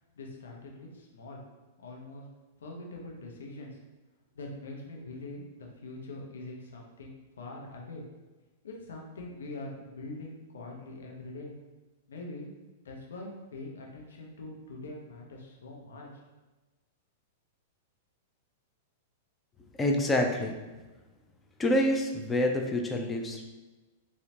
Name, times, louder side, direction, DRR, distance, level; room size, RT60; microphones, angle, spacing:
voice 1, 0.2-1.4 1.8-2.2 2.6-3.8 4.3-8.1 8.6-11.5 12.1-12.5 12.8-16.1, left 2 dB, 65° left, 0 dB, 0.6 m, -43 dB
voice 2, 19.8-20.6 21.6-23.4, left 1 dB, 15° left, 3 dB, 0.4 m, -27 dB
3.9 x 2.1 x 2.8 m, 1.2 s
figure-of-eight pair, 100°, 0 cm